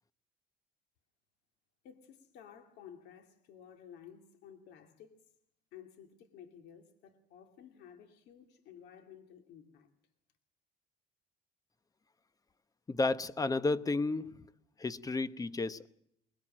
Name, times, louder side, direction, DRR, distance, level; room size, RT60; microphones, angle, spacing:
voice 1, 1.8-5.2 5.7-9.9, left 8 dB, 85° left, 2.5 m, -54 dB
voice 2, 12.9-14.4 14.8-15.9, left 3 dB, 20° left, 0.9 m, -32 dB
23.0 x 20.5 x 7.5 m
cardioid pair, 110°, 17 cm